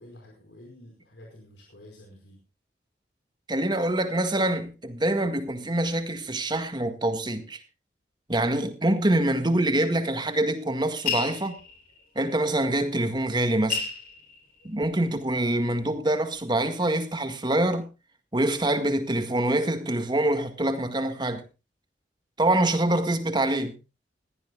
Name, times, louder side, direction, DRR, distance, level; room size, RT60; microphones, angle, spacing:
voice 1, 0.0-2.4, left 1 dB, 90° left, 4.9 m, -49 dB
voice 2, 3.5-7.6 8.3-11.6 12.2-13.9 14.6-17.9 18.3-21.4 22.4-23.8, right 1 dB, 25° right, 1.9 m, -25 dB
sound 1, 11.1-12.0 13.1-13.2 13.5-15.1 15.6-16.2, left 6 dB, 55° left, 3.8 m, -32 dB
21.0 x 15.0 x 2.3 m
head